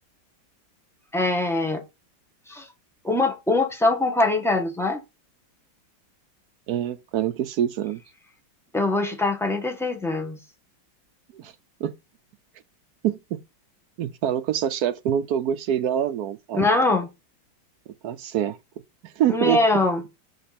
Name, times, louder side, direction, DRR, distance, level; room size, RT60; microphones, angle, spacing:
voice 1, 1.1-1.8 2.5-2.7 3.0-5.0 8.7-10.4 16.5-17.1 19.3-20.0, left 2 dB, ahead, 1.0 m, -22 dB
voice 2, 6.7-8.0 11.3-11.5 11.8-11.9 13.0-13.4 14.0-16.6 18.0-18.6 19.0-19.6, right 10 dB, 70° right, 0.9 m, -25 dB
6.8 x 5.0 x 4.2 m
omnidirectional pair, 2.1 m